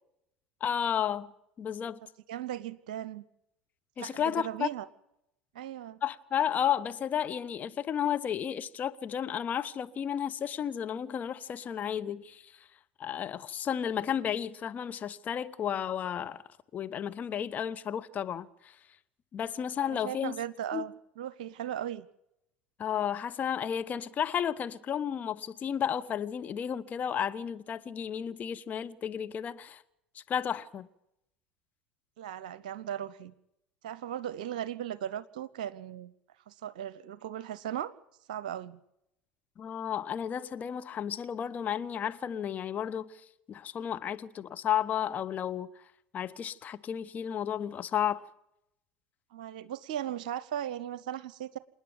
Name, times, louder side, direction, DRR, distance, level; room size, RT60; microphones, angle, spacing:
voice 1, 0.6-2.0 4.0-4.7 6.0-12.7 13.0-16.4 16.7-18.8 19.3-20.3 20.7-20.8 22.8-29.8 30.1-30.9 39.6-43.1 43.5-45.7 46.1-48.2, left 9 dB, 35° left, 1.1 m, -33 dB
voice 2, 2.3-3.2 4.0-4.9 5.5-6.0 19.8-22.1 32.2-33.3 33.8-36.1 36.5-37.9 38.3-38.8 49.3-51.6, right 10 dB, 65° right, 0.8 m, -37 dB
28.0 x 9.9 x 9.5 m
figure-of-eight pair, 70°, 5 cm